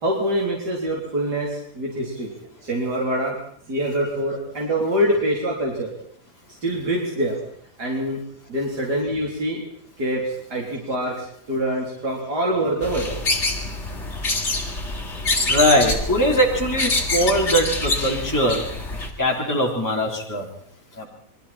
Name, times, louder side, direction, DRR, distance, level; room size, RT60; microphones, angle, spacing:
voice 1, 0.0-2.3 2.6-3.3 3.7-5.9 6.6-7.3 7.8-8.2 8.5-9.6 10.0-13.1, right 1 dB, 80° right, -2 dB, 4.3 m, -24 dB
sound 1, 12.8-19.1, left 2 dB, 45° left, 3.6 m, -25 dB
voice 2, 15.5-18.6 19.2-20.4 21.0-21.1, equal, 10° left, -2 dB, 4.0 m, -21 dB
30.0 x 23.5 x 4.4 m, 0.64 s
omnidirectional pair, 1.7 m